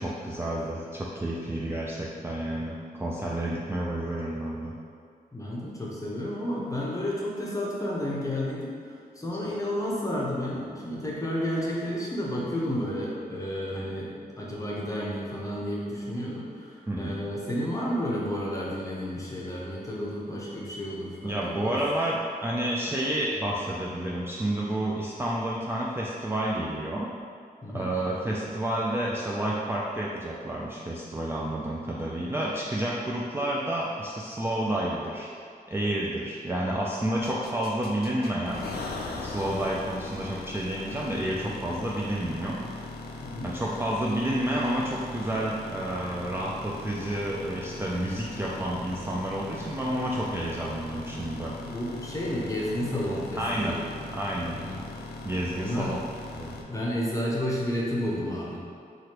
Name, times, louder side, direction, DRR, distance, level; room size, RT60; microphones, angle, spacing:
voice 1, 0.0-4.7 16.9-17.2 21.2-27.1 27.7-35.3 35.7-38.7 39.1-42.6 43.4-51.6 53.4-53.8 54.1-54.6 55.2-56.0 56.3-56.6, right 1 dB, 15° right, -5 dB, 0.3 m, -30 dB
voice 2, 5.3-21.4 21.6-21.8 27.6-27.9 43.2-43.5 51.6-54.1 54.5-54.8 55.6-56.0 56.7-58.6, equal, 20° left, -5 dB, 0.7 m, -31 dB
sound 1, 37.2-56.6, left 3 dB, 75° left, 0.4 m, -40 dB
3.1 x 2.5 x 2.9 m, 2.2 s
cardioid pair, 75°, 16 cm